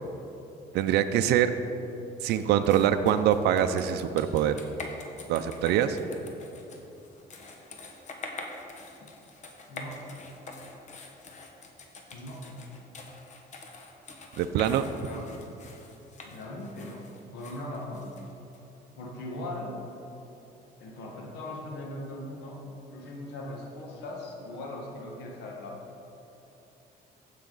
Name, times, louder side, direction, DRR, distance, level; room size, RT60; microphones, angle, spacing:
voice 1, 0.7-1.5 2.2-4.6 5.3-6.0 14.4-14.8, right 10 dB, 75° right, 9 dB, 0.5 m, -24 dB
sound 1, 2.2-18.6, left 3 dB, 45° left, 1.2 m, -45 dB
voice 2, 9.7-10.1 12.1-12.6 15.0-15.2 16.2-18.2 18.9-19.8 20.8-22.6 22.9-25.8, left 1 dB, 85° left, 0 dB, 1.4 m, -39 dB
15.5 x 5.7 x 3.9 m, 3.0 s
cardioid pair, 110°, 17 cm